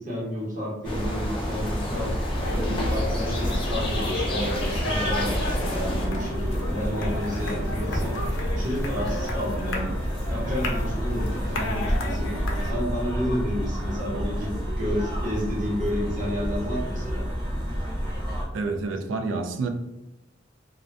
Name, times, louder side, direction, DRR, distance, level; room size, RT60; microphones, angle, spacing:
voice 1, 0.0-2.2 2.5-8.2 8.5-10.0 10.3-12.3 12.6-17.3, equal, 45° right, -5 dB, 0.9 m, -31 dB
sound 1, 0.8-6.1, left 1 dB, 30° left, 0.5 m, -32 dB
sound 2, 0.8-18.4, equal, 25° right, 0.6 m, -30 dB
sound 3, 2.3-12.7, left 1 dB, 85° left, 0.4 m, -32 dB
voice 2, 18.5-19.7, right 3 dB, 85° right, 5 dB, 0.3 m, -28 dB
2.5 x 2.1 x 2.4 m, 0.93 s
head